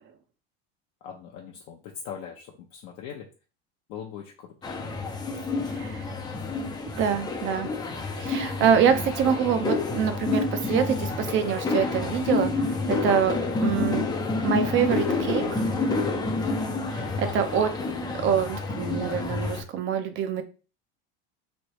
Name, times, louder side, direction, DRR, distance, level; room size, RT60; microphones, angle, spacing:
voice 1, 1.0-3.3 3.9-4.5 16.6-17.0, left 8 dB, 55° left, 0 dB, 0.6 m, -41 dB
sound 1, 4.6-19.6, left 3 dB, 15° left, 0.4 m, -29 dB
voice 2, 5.7-6.0 6.9-7.7 8.2-14.1 14.4-15.6 16.9-17.7 18.2-20.4, right 8 dB, 40° right, 9 dB, 0.6 m, -25 dB
sound 2, 12.7-18.3, right 5 dB, 60° right, 1.2 m, -43 dB
3.2 x 2.6 x 3.0 m, 0.33 s
supercardioid pair, 130°, 32 cm